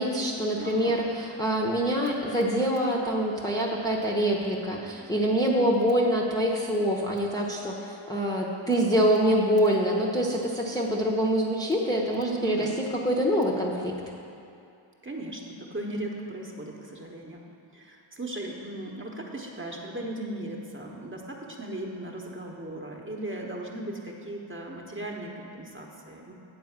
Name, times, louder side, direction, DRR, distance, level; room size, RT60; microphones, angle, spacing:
voice 1, 0.0-12.7 13.0-14.0, equal, 10° left, -4 dB, 0.8 m, -25 dB
voice 2, 0.5-1.0 12.3-12.7 15.0-17.4 17.7-26.3, right 1 dB, 25° right, -1 dB, 1.0 m, -37 dB
8.7 x 4.6 x 7.2 m, 2.6 s
wide cardioid pair, 90°, 50 cm